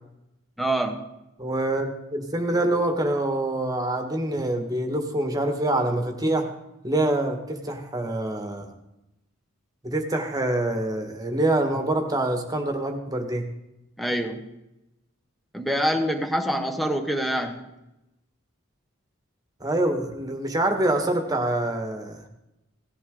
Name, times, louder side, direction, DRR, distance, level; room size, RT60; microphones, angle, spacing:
voice 1, 0.6-1.0 14.0-14.5 15.5-17.7, equal, ahead, 5 dB, 1.3 m, -26 dB
voice 2, 1.4-6.5 6.8-8.7 9.8-13.5 19.6-22.2, right 1 dB, 15° right, 4 dB, 1.6 m, -25 dB
18.0 x 14.0 x 3.9 m, 0.92 s
head